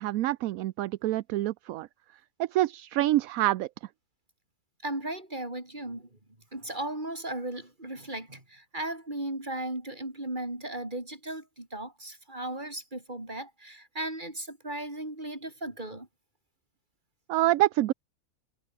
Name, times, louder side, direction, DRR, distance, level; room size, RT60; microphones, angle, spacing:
voice 1, 0.0-1.9 2.4-3.7 17.3-17.9, right 15 dB, 75° right, 1.0 m, -26 dB
voice 2, 4.8-6.1 6.5-16.1, right 1 dB, 30° right, 5.6 m, -36 dB
omnidirectional pair, 1.5 m